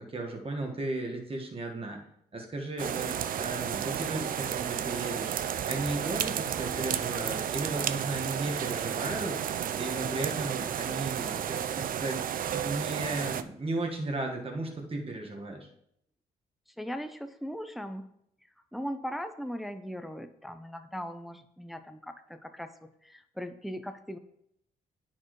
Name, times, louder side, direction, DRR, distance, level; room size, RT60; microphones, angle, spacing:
voice 1, 0.0-2.0 2.3-5.3 5.7-9.4 9.8-12.2 12.5-15.7, right 2 dB, 35° right, 1 dB, 1.4 m, -35 dB
sound 1, 2.8-13.4, right 9 dB, 55° right, 0.4 m, -32 dB
voice 2, 16.7-18.2 18.7-24.2, equal, ahead, 9 dB, 0.5 m, -39 dB
9.8 x 4.4 x 3.1 m, 0.74 s
supercardioid pair, 55°, 17 cm